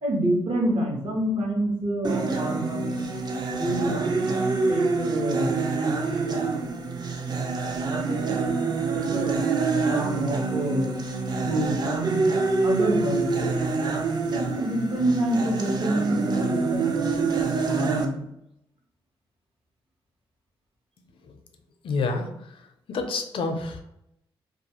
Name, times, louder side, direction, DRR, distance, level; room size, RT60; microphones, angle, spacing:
voice 1, 0.0-2.9 3.5-4.1 4.7-5.6 8.9-9.4 9.9-11.0 11.4-12.2 12.6-13.6 14.3-18.3, right 1 dB, 60° right, -1 dB, 0.9 m, -27 dB
sound 1, 2.0-18.1, right 4 dB, 45° right, 0.4 m, -26 dB
voice 2, 21.8-22.3 22.9-23.8, left 3 dB, 65° left, 6 dB, 0.4 m, -27 dB
2.3 x 2.3 x 2.9 m, 0.80 s
cardioid pair, 65°, 10 cm